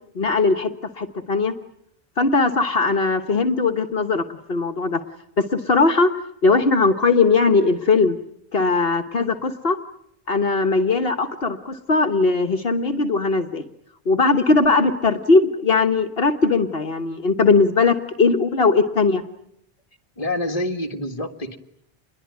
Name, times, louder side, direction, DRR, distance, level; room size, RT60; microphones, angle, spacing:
voice 1, 0.1-1.5 2.2-5.0 5.4-6.1 6.4-8.2 8.5-9.8 10.3-13.6 14.0-19.2, left 3 dB, 65° left, 6 dB, 1.6 m, -19 dB
voice 2, 20.2-21.6, left 1 dB, 35° left, 5 dB, 1.9 m, -27 dB
28.0 x 22.0 x 9.4 m, 0.75 s
omnidirectional pair, 1.1 m